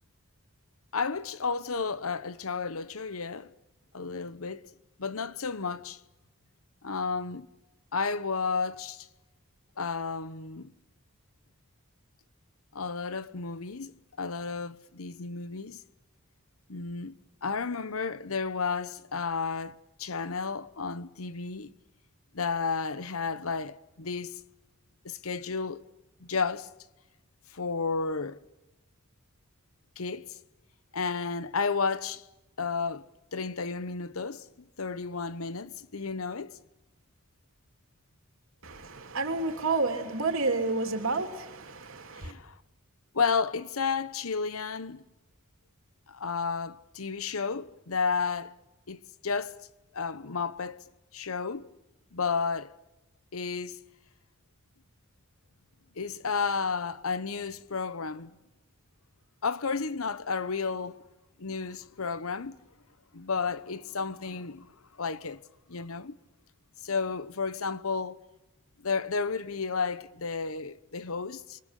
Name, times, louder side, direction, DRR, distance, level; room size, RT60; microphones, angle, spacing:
voice 1, 0.9-3.5 3.9-4.7 5.0-6.0 6.8-7.5 7.9-9.1 9.8-10.7 12.7-15.8 16.7-21.7 22.3-24.4 25.0-25.8 26.2-26.7 27.5-28.4 30.0-30.4 30.9-32.3 32.6-33.1 33.3-34.5 34.8-36.6 42.2-42.5 43.1-45.0 46.1-48.5 48.9-49.6 49.9-50.8 51.1-51.7 52.1-52.7 53.3-53.8 56.0-58.3 59.4-61.0 61.4-62.6 63.1-64.7 65.0-65.4 65.7-66.2 66.8-68.2 68.8-71.6, left 5 dB, 70° left, 1.0 m, -32 dB
voice 2, 38.6-42.3, right 3 dB, 65° right, 3.2 m, -30 dB
29.5 x 23.5 x 8.3 m
head